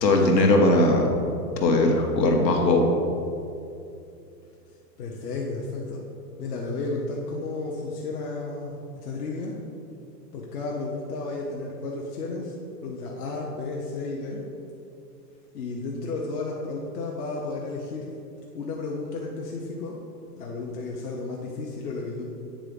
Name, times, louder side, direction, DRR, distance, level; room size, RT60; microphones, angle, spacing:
voice 1, 0.0-1.1 1.6-2.9, left 2 dB, 80° left, 2 dB, 1.5 m, -19 dB
voice 2, 5.0-6.0 6.4-9.6 10.3-12.5 12.8-14.4 15.5-18.1 18.5-20.0 20.4-22.3, left 3 dB, 65° left, -2 dB, 1.0 m, -33 dB
8.8 x 3.8 x 5.2 m, 2.6 s
hypercardioid pair, 175°, 50 cm